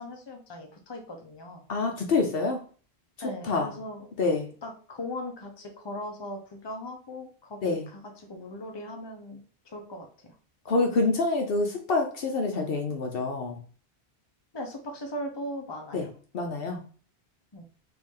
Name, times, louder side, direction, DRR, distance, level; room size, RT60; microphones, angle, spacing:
voice 1, 0.0-1.6 3.2-4.1 4.6-10.3 14.5-16.1 17.5-17.6, left 1 dB, 25° left, 2 dB, 0.8 m, -39 dB
voice 2, 1.7-2.6 3.4-3.7 4.2-4.5 7.6-7.8 10.7-13.6 15.9-16.1 16.3-16.8, left 3 dB, 65° left, 3 dB, 0.9 m, -26 dB
4.6 x 2.6 x 3.7 m, 0.41 s
omnidirectional pair, 1.1 m